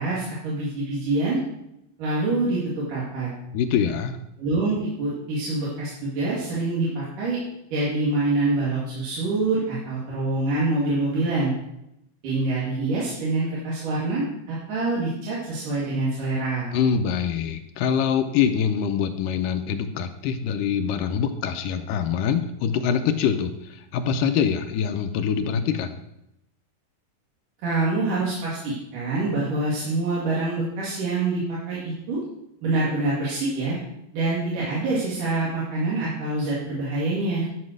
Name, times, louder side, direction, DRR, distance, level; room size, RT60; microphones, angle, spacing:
voice 1, 0.0-1.4 2.0-3.3 4.4-7.4 7.7-11.5 12.2-16.7 27.6-32.2 32.6-33.8 34.1-37.5, right 2 dB, 70° right, -7 dB, 3.7 m, -25 dB
voice 2, 3.5-4.2 16.7-25.9, left 7 dB, 80° left, 8 dB, 2.2 m, -24 dB
11.5 x 5.4 x 6.3 m, 0.83 s
omnidirectional pair, 4.0 m